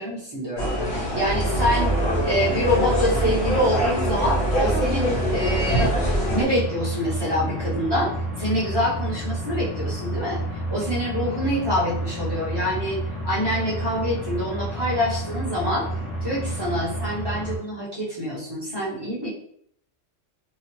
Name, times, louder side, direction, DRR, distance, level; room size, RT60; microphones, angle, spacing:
voice 1, 0.0-1.9 2.2-5.9 6.3-8.1 8.4-10.4 10.7-15.9 16.2-19.3, left 1 dB, 25° right, -7 dB, 0.7 m, -26 dB
sound 1, 0.6-6.4, equal, 55° left, 1.2 m, -24 dB
sound 2, 1.3-17.6, right 1 dB, 35° left, 0.6 m, -30 dB
2.8 x 2.0 x 3.0 m, 0.66 s
omnidirectional pair, 1.3 m